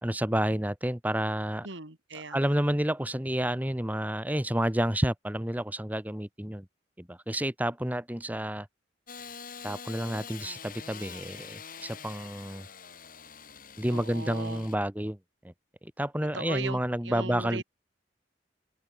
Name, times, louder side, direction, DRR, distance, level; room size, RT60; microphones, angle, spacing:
voice 1, 0.0-1.7 2.3-6.6 7.0-8.7 9.6-12.7 13.8-15.2 15.4-15.5 15.8-17.6, right 1 dB, 10° right, 1.7 m, -30 dB
voice 2, 1.6-2.4 13.9-14.7 16.3-16.8 17.0-17.6, right 3 dB, 85° right, 3.1 m, -38 dB
Engine starting / Sawing, 9.1-14.7, left 6 dB, 50° left, 7.2 m, -45 dB
head